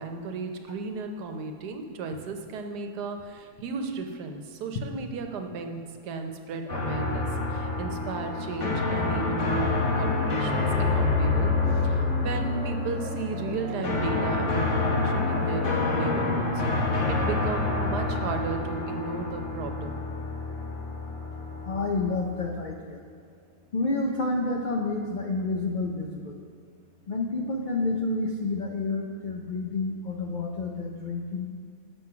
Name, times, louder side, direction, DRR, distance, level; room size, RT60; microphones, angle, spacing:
voice 1, 0.0-9.7 10.0-16.5 16.7-20.0 20.5-20.6, right 4 dB, 90° right, 5 dB, 1.4 m, -34 dB
sound 1, 6.7-22.6, left 3 dB, 55° left, 1.4 m, -27 dB
sound 2, 10.7-23.3, right 4 dB, 55° right, 0.9 m, -43 dB
voice 2, 21.6-23.0 23.7-26.4 27.1-31.5, left 3 dB, 70° left, 1 dB, 0.4 m, -29 dB
7.7 x 6.1 x 5.8 m, 2.1 s
omnidirectional pair, 1.7 m